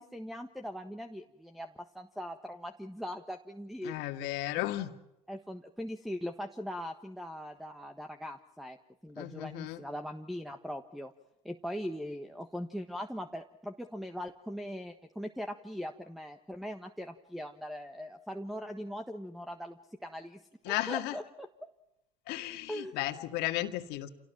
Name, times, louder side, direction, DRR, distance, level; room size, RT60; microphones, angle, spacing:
voice 1, 0.0-4.3 5.3-8.8 9.0-11.1 11.4-21.7 22.7-22.9, equal, ahead, 8 dB, 1.5 m, -40 dB
voice 2, 3.8-4.9 9.2-9.8 20.7-21.2 22.3-24.1, left 15 dB, 70° left, 7 dB, 2.1 m, -34 dB
28.0 x 18.0 x 7.5 m, 0.87 s
hypercardioid pair, 75°, 17 cm